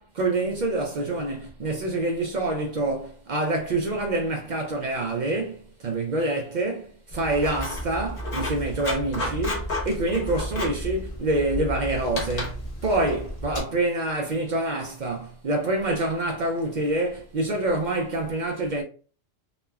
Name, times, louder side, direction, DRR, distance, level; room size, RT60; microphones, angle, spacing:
voice 1, 0.0-18.8, right 2 dB, 70° right, 0.4 m, -26 dB
Writing, 7.1-13.6, left 1 dB, 40° left, 0.6 m, -32 dB
3.1 x 2.1 x 2.2 m
omnidirectional pair, 1.3 m